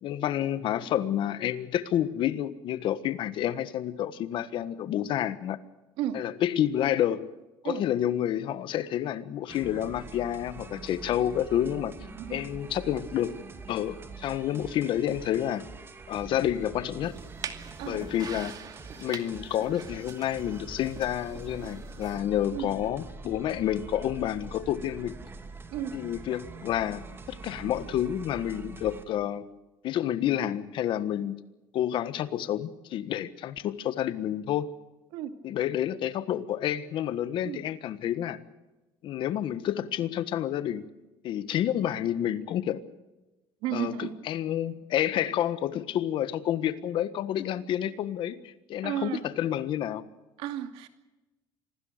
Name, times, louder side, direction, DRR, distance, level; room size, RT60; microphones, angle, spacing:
voice 1, 0.0-5.6 6.1-7.3 7.6-11.9 12.3-13.4 13.7-15.6 16.1-17.2 17.8-18.5 19.0-25.1 25.9-29.5 29.8-31.4 31.7-34.7 35.4-38.4 39.0-40.8 41.2-42.8 43.7-50.0, left 11 dB, 60° left, 1.5 m, -29 dB
sound 1, 9.5-29.0, right 4 dB, 25° right, 2.8 m, -44 dB
voice 2, 12.1-12.5 17.8-18.0 22.5-22.7 25.7-26.0 35.1-35.4 37.4-37.6 43.6-44.2 48.8-49.2 50.4-50.9, right 10 dB, 80° right, 2.6 m, -33 dB
sound 2, 17.0-22.2, right 7 dB, 45° right, 2.3 m, -44 dB
26.0 x 19.0 x 6.7 m
cardioid pair, 115°, 9 cm